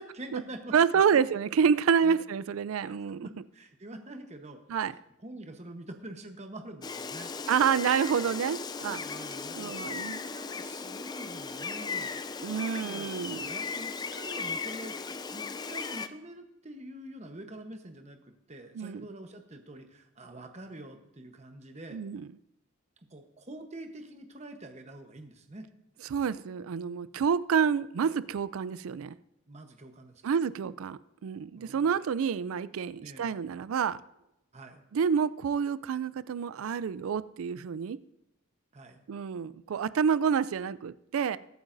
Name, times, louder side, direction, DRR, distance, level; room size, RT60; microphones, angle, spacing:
voice 1, 0.0-1.3 2.0-2.2 2.9-4.6 5.2-7.3 8.8-12.2 12.8-13.1 13.4-15.0 15.3-18.2 18.5-22.0 23.1-25.7 29.5-30.2 31.6-31.9 33.0-33.3 34.5-34.8 38.7-39.0, right 1 dB, 30° right, 6 dB, 1.0 m, -46 dB
voice 2, 0.7-3.3 4.7-4.9 7.5-9.0 9.5-10.2 12.4-13.5 18.8-19.1 21.9-22.3 26.1-29.2 30.2-34.0 34.9-38.0 39.1-41.4, right 7 dB, 80° right, 17 dB, 0.4 m, -28 dB
Gull seagull, 6.8-16.1, left 4 dB, 20° left, 0.3 m, -37 dB
22.0 x 8.8 x 2.6 m, 0.83 s
head